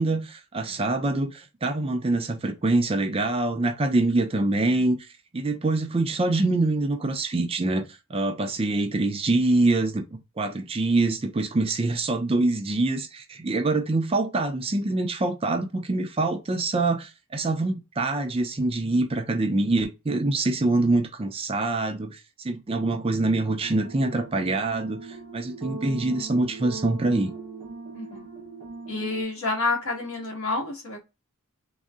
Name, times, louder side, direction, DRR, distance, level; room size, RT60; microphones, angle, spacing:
voice 1, 0.0-5.0 5.3-7.8 8.1-25.0 25.3-27.3, right 2 dB, 25° right, 0.4 m, -25 dB
sound 1, 23.6-29.2, right 4 dB, 85° right, 0.6 m, -39 dB
voice 2, 27.9-28.3 28.9-31.0, left 3 dB, 70° left, 1.3 m, -29 dB
3.7 x 2.0 x 2.2 m
head